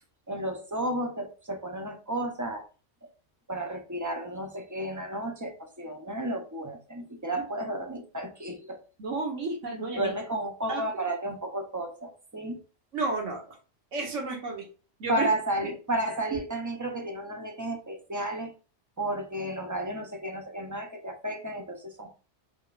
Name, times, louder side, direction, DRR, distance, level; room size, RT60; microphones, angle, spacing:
voice 1, 0.3-2.7 3.5-8.8 9.9-12.6 15.1-18.5 19.0-22.1, right 1 dB, 20° right, 4 dB, 0.7 m, -32 dB
voice 2, 9.0-10.1 10.7-10.8 12.9-13.4 13.9-14.7 15.0-15.3 15.6-15.7, right 3 dB, 90° right, 2 dB, 1.6 m, -31 dB
5.0 x 3.7 x 2.5 m, 0.35 s
omnidirectional pair, 1.2 m